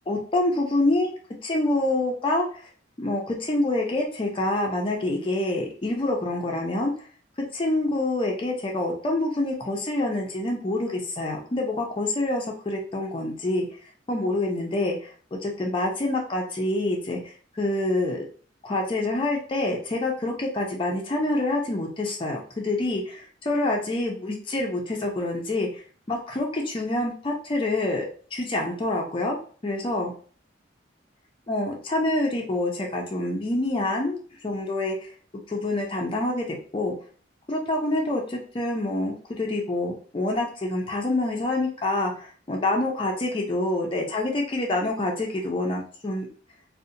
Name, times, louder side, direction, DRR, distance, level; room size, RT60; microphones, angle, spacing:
voice 1, 0.1-1.1 1.4-2.5 3.0-6.9 7.5-13.7 14.1-18.2 18.6-25.8 26.1-28.1 28.3-29.4 29.6-30.1 31.5-34.2 34.4-35.1 35.5-36.9 37.5-46.3, left 2 dB, 25° left, 0 dB, 0.4 m, -26 dB
2.7 x 2.0 x 2.5 m, 0.43 s
head